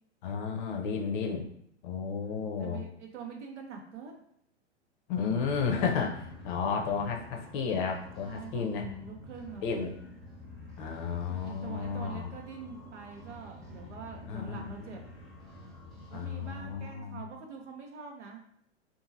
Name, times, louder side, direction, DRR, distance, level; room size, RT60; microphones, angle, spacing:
voice 1, 0.2-1.5 1.8-2.8 5.1-8.9 9.6-9.9 10.8-12.3 14.3-14.9 16.1-17.2, left 6 dB, 45° left, 2 dB, 0.6 m, -32 dB
voice 2, 2.2-4.2 8.2-9.9 11.4-15.0 16.1-18.4, right 5 dB, 80° right, 1 dB, 0.7 m, -45 dB
sound 1, 5.4-16.8, left 1 dB, ahead, 0.7 m, -48 dB
2.7 x 2.6 x 2.5 m, 0.71 s
hypercardioid pair, 105°, 35 cm